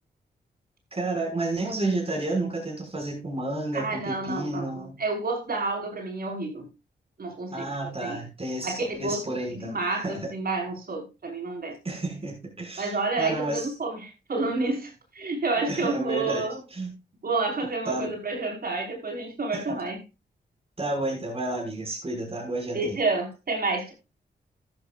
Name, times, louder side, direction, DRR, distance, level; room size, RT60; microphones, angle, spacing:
voice 1, 0.9-4.9 7.5-9.7 10.0-10.3 11.8-13.7 15.7-16.4 16.7-16.9 17.8-18.1 19.5-19.6 20.8-23.0, right 2 dB, 35° right, 6.6 m, -31 dB
voice 2, 3.7-6.7 7.2-8.2 8.6-11.8 12.8-16.6 17.2-20.0 22.7-23.9, right 3 dB, 60° right, 5.6 m, -30 dB
13.5 x 13.0 x 2.6 m
cardioid pair, 65°, 18 cm